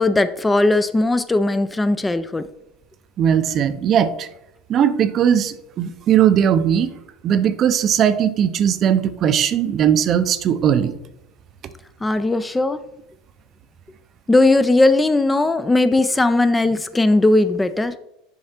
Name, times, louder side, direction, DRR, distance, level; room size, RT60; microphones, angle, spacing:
voice 1, 0.0-2.5 12.0-12.8 14.3-18.0, left 2 dB, 10° left, 12 dB, 0.4 m, -18 dB
voice 2, 3.2-4.3 4.7-6.9 7.2-10.9, right 9 dB, 40° right, 12 dB, 0.5 m, -18 dB
6.5 x 4.8 x 4.3 m, 0.84 s
supercardioid pair, 105°, 0 cm